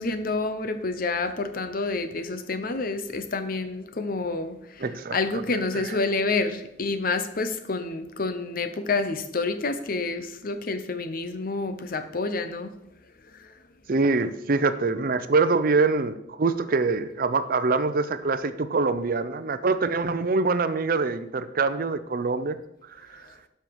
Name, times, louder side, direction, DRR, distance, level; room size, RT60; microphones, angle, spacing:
voice 1, 0.0-4.9 5.1-12.8 13.4-13.5, left 3 dB, 50° left, 0.8 m, -28 dB
voice 2, 4.8-5.2 13.9-22.6, right 3 dB, 55° right, 0.6 m, -24 dB
12.0 x 5.7 x 4.7 m
head